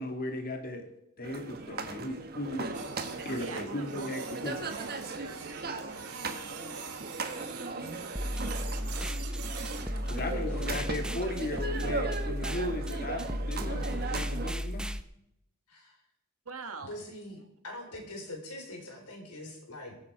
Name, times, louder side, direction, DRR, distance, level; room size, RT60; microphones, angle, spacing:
voice 1, 0.0-2.7 3.3-4.6 10.1-14.9, left 1 dB, 40° left, 5 dB, 1.9 m, -36 dB
sound 1, 1.2-14.5, right 3 dB, 45° right, 1.3 m, -38 dB
Printer, 2.7-14.8, right 6 dB, 90° right, 2.0 m, -46 dB
voice 2, 3.3-4.4 5.1-7.7 16.4-17.0 17.9-18.0, right 4 dB, 70° right, 7 dB, 1.7 m, -46 dB
sound 2, 8.2-15.0, equal, 5° right, 0.6 m, -34 dB
voice 3, 10.1-10.7 15.7-16.0 16.8-20.0, left 1 dB, 80° left, 2 dB, 4.2 m, -44 dB
22.0 x 8.1 x 4.7 m, 0.79 s
head